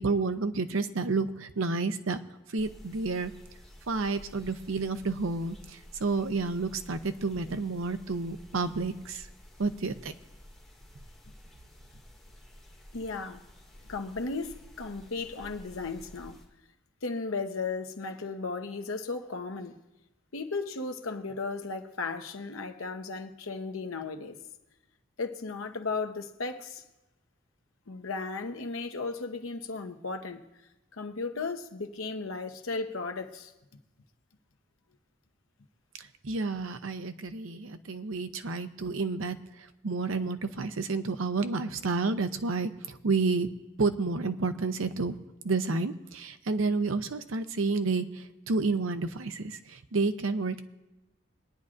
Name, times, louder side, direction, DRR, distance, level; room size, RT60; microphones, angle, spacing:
voice 1, 0.0-2.2 2.5-3.3 3.9-9.3 9.6-10.1 36.0-43.5 43.8-45.2 45.4-50.6, right 3 dB, 80° right, 0.7 m, -30 dB
sound 1, 2.6-16.4, equal, 5° left, 2.1 m, -52 dB
voice 2, 12.9-13.4 13.9-16.4 17.0-19.7 20.3-24.4 25.2-26.8 27.9-30.4 30.9-33.5, left 4 dB, 90° left, 1.0 m, -35 dB
22.0 x 9.7 x 2.5 m
head